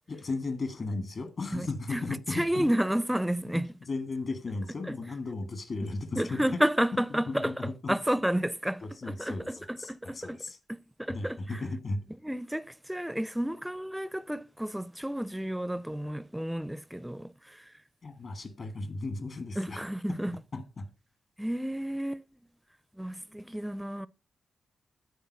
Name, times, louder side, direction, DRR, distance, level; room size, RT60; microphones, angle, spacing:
voice 1, 0.1-2.7 3.8-6.4 6.9-8.0 8.8-10.6 11.1-12.0 18.0-19.8 20.5-20.9, left 3 dB, 55° left, 1.9 m, -36 dB
voice 2, 1.9-3.7 4.9-5.0 6.2-10.4 10.7-11.4 12.2-17.3 19.6-20.4 21.4-22.2 23.0-24.1, right 1 dB, 5° right, 0.5 m, -31 dB
9.4 x 4.0 x 6.3 m
hypercardioid pair, 40°, 0 cm